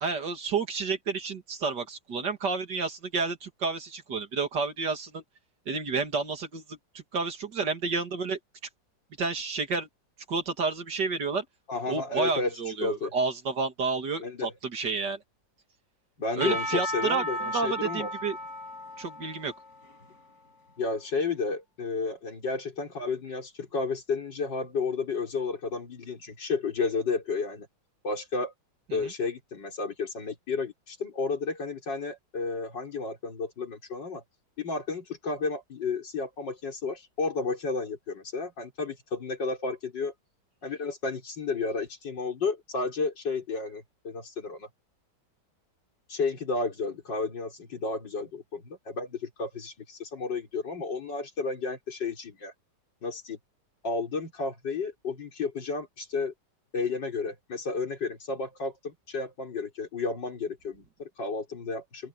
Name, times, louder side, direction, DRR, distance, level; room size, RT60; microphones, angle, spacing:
voice 1, 0.0-5.2 5.7-8.4 9.2-9.9 10.3-11.4 11.9-15.2 16.4-17.2 17.5-18.4 19.0-19.5 29.0-29.1, right 4 dB, 65° right, 2.8 m, -30 dB
voice 2, 11.7-13.1 14.2-14.5 16.2-18.1 20.8-27.7 28.0-28.5 28.9-34.2 34.6-40.1 40.6-44.7 46.1-52.5 53.0-53.4 53.8-56.3 56.7-62.1, left 4 dB, 70° left, 4.8 m, -32 dB
Percussion / Church bell, 16.4-20.4, equal, 50° left, 6.9 m, -35 dB
open air
omnidirectional pair, 2.0 m